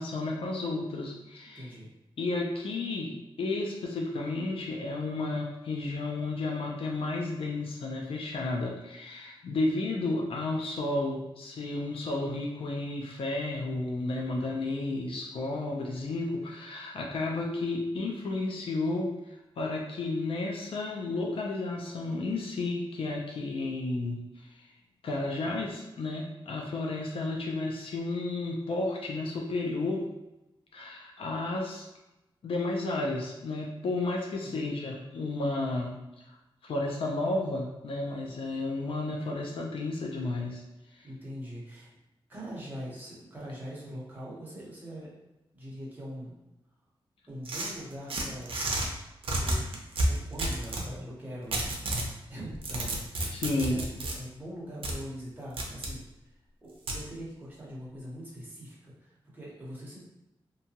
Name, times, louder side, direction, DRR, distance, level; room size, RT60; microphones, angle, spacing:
voice 1, 0.0-1.7 2.2-19.1 19.6-24.2 25.0-30.0 30.7-31.8 32.4-35.9 36.6-40.6 41.0-41.1 53.3-53.8, left 2 dB, 75° left, -1 dB, 0.5 m, -32 dB
voice 2, 1.5-1.9 34.4-35.0 41.0-41.9 42.3-45.1 45.5-46.3 47.3-48.6 49.3-51.6 52.3-53.4 53.7-56.0 56.6-60.0, equal, 20° right, -6 dB, 0.9 m, -42 dB
sound 1, 47.5-48.9 49.2-50.9 51.5-52.1 52.5-54.2 54.8-55.0 55.6-55.9 56.9-57.0, right 1 dB, 75° right, 0.5 m, -30 dB
2.8 x 2.2 x 2.8 m, 0.96 s
wide cardioid pair, 135°, 9 cm